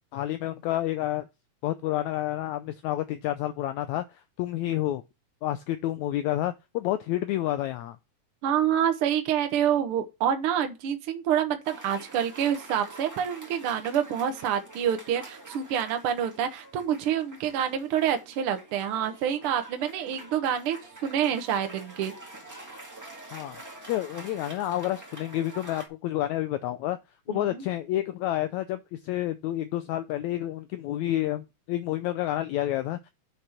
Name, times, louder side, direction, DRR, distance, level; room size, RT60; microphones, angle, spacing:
voice 1, 0.1-1.3 1.6-4.0 4.4-5.0 5.4-8.0 23.3-23.6 23.9-27.0 27.3-33.1, left 14 dB, 90° left, 1.6 m, -29 dB
voice 2, 8.4-20.8 21.0-22.1 27.3-27.6, right 9 dB, 65° right, 1.4 m, -27 dB
Cheering / Applause, 11.6-25.9, right 2 dB, 10° right, 1.1 m, -46 dB
8.2 x 6.0 x 4.3 m
omnidirectional pair, 3.9 m